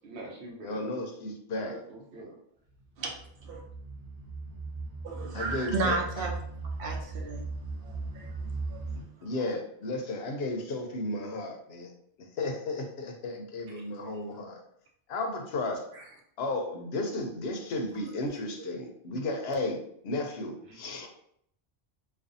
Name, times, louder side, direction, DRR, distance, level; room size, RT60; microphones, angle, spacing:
voice 1, 0.0-0.8 1.5-2.4 20.6-20.8, right 2 dB, 85° right, -2 dB, 1.0 m, -44 dB
voice 2, 0.6-1.7 5.3-6.3 9.2-11.9 12.2-14.6 15.1-15.8 16.4-19.8 20.0-21.1, left 2 dB, 75° left, 3 dB, 0.8 m, -34 dB
sound 1, 2.8-9.0, right 3 dB, 35° right, 0.9 m, -38 dB
voice 3, 5.0-6.3 6.8-7.4 7.8-8.3 8.7-8.8, right 3 dB, 65° right, 0 dB, 0.8 m, -33 dB
2.5 x 2.3 x 2.5 m, 0.69 s
omnidirectional pair, 1.1 m